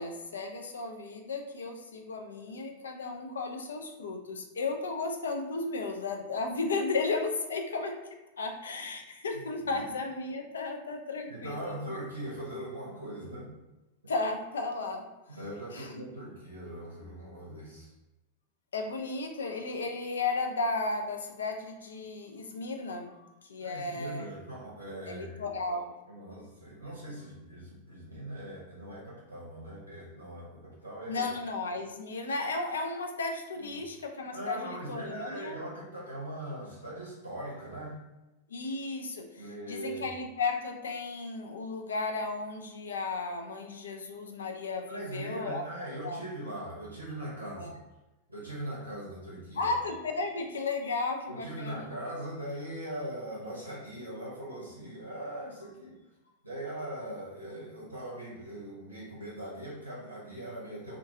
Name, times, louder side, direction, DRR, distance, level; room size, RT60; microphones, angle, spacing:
voice 1, 0.0-8.0 8.4-11.8 14.1-15.1 15.7-16.0 18.7-24.3 25.1-25.9 31.1-35.6 38.5-46.3 47.6-47.8 49.6-51.9, left 3 dB, 70° left, 4 dB, 0.3 m, -34 dB
voice 2, 11.3-13.5 15.3-17.9 23.6-25.4 26.1-31.3 33.6-33.7 34.3-38.0 39.4-40.1 44.9-47.8 48.3-49.7 51.3-56.0 56.4-61.0, right 1 dB, 85° right, -5 dB, 0.6 m, -40 dB
2.5 x 2.2 x 2.6 m, 1.0 s
figure-of-eight pair, 90°, 0 cm